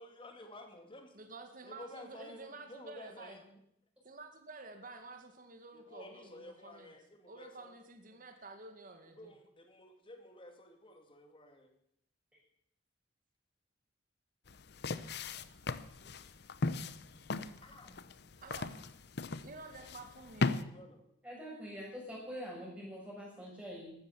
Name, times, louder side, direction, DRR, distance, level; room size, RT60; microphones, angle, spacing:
voice 1, 0.0-1.2 1.6-3.6 5.7-7.7 8.1-8.2 9.2-11.7 15.8-16.2 17.6-18.0 20.4-21.0, left 1 dB, 25° left, 4 dB, 2.4 m, -53 dB
voice 2, 1.1-3.4 4.0-6.9 7.3-9.3 18.4-18.7 19.4-20.8, right 3 dB, 45° right, 5 dB, 2.0 m, -50 dB
sound 1, 14.5-20.6, left 3 dB, 60° left, 0.8 m, -38 dB
voice 3, 21.2-23.9, equal, 5° right, -3 dB, 6.4 m, -45 dB
14.5 x 13.0 x 7.1 m, 0.75 s
head